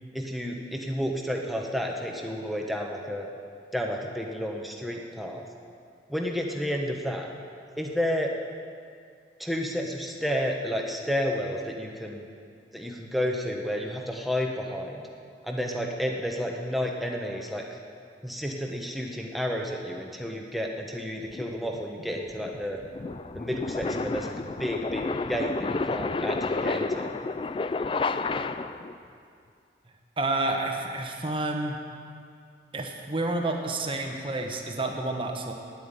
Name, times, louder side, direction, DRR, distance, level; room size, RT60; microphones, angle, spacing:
voice 1, 0.1-3.3 3.7-5.5 6.1-7.3 7.8-8.3 9.4-12.2 12.7-15.0 15.4-17.7 18.2-22.8 23.3-24.3 24.6-27.1, equal, ahead, 1 dB, 1.0 m, -31 dB
sound 1, 21.3-28.9, left 3 dB, 30° left, 0.3 m, -31 dB
voice 2, 30.2-31.8 32.7-35.5, right 2 dB, 30° right, 3 dB, 1.0 m, -29 dB
9.4 x 9.2 x 9.8 m, 2.3 s
head